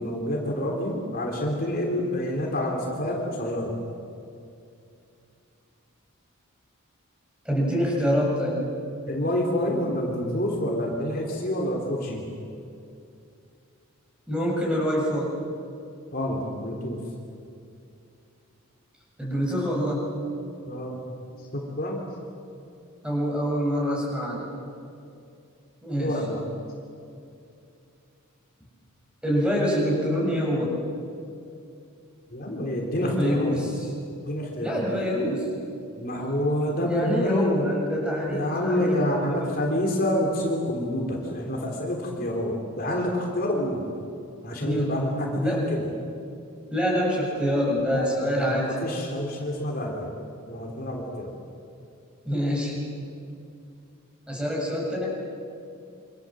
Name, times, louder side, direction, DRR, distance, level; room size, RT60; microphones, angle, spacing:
voice 1, 0.0-3.8 9.1-12.2 16.1-17.0 20.7-21.0 21.5-22.0 26.0-26.4 32.3-33.6 34.3-34.8 36.0-37.6 38.3-43.8 44.4-45.9 47.9-50.1 50.5-51.4, left 1 dB, 40° left, -1 dB, 3.5 m, -28 dB
voice 2, 7.5-8.6 14.3-15.3 19.2-20.1 23.0-24.5 25.8-26.2 29.2-30.7 33.0-33.9 34.6-35.5 36.8-39.5 44.6-45.0 45.3-45.6 46.7-48.7 52.3-52.8 54.3-55.1, equal, 5° right, -3 dB, 7.2 m, -26 dB
27.0 x 26.0 x 7.7 m, 2.5 s
head